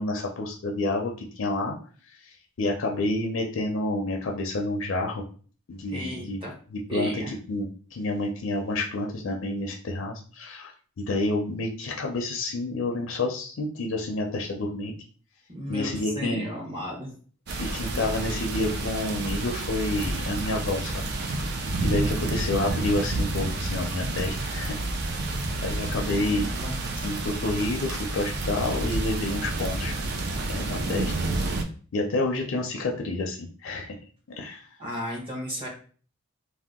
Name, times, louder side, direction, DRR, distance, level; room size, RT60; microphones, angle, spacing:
voice 1, 0.0-1.7 2.2-5.2 5.7-6.4 6.7-10.7 11.0-14.9 15.7-16.5 17.6-21.1 21.4-21.5 21.8-24.7 25.6-26.5 27.0-29.9 30.5-31.2 31.9-34.0 34.4-34.6, left 2 dB, 65° left, 1 dB, 0.4 m, -29 dB
voice 2, 5.9-6.5 6.9-7.3 15.5-17.2 25.8-26.8 34.8-35.7, equal, 25° right, -2 dB, 0.9 m, -35 dB
sound 1, 17.5-31.6, right 2 dB, 50° right, 0.4 m, -29 dB
2.7 x 2.1 x 3.5 m, 0.42 s
head